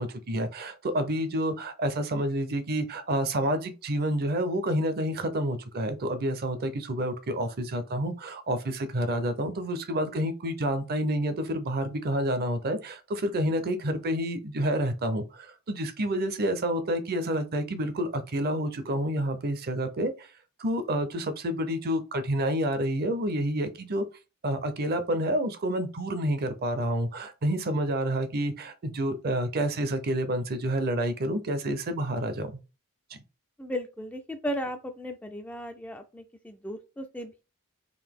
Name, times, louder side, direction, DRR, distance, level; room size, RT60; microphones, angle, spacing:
voice 1, 0.0-20.3 20.6-24.1 24.4-32.5, right 1 dB, 45° right, 0.6 m, -29 dB
voice 2, 33.6-37.4, equal, 5° left, 0.3 m, -36 dB
3.9 x 2.6 x 3.5 m
head